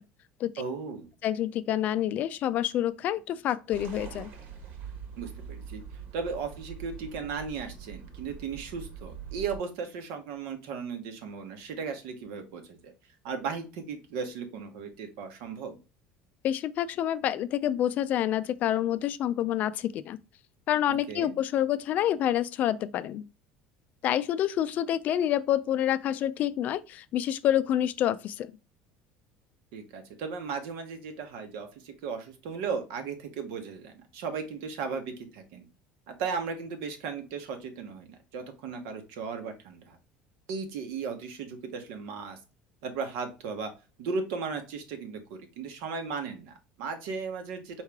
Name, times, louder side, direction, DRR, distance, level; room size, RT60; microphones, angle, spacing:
voice 1, 0.6-1.1 5.2-5.8 6.1-12.9 13.2-15.8 20.9-21.4 29.7-35.7 36.1-40.0 40.5-42.4 42.8-43.7 44.0-47.8, right 5 dB, 80° right, 1.2 m, -36 dB
voice 2, 1.2-4.3 16.4-20.2 20.7-23.2 24.0-28.5, left 11 dB, 45° left, 0.3 m, -27 dB
sound 1, 3.7-9.6, right 7 dB, 55° right, 1.3 m, -43 dB
4.5 x 3.2 x 3.5 m
cardioid pair, 150°, 4 cm